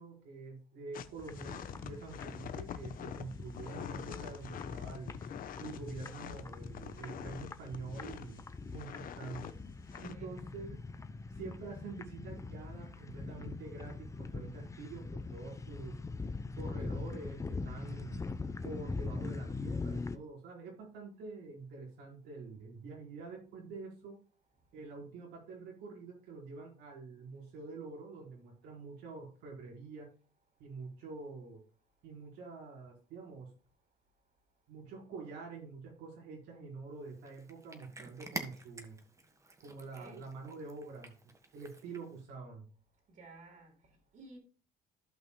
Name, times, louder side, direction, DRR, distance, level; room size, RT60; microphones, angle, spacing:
voice 1, 0.0-5.2 5.6-8.4 8.7-9.6 10.0-10.8 11.3-16.0 16.5-18.2 18.6-24.2 24.7-30.1 30.6-31.6 32.0-33.5 34.7-39.0 39.6-41.1 41.5-42.7, right 4 dB, 85° right, 4.6 m, -46 dB
sound 1, 0.9-8.4 8.7-9.5 9.9-10.1, left 9 dB, 55° left, 0.9 m, -45 dB
sound 2, 1.2-20.2, left 3 dB, 20° left, 0.7 m, -43 dB
voice 2, 9.9-10.3 39.9-40.3 43.1-44.4, right 3 dB, 50° right, 4.2 m, -55 dB
Cat, 37.0-42.2, right 2 dB, 20° right, 1.5 m, -48 dB
15.5 x 5.5 x 2.2 m
cardioid pair, 110°, 17 cm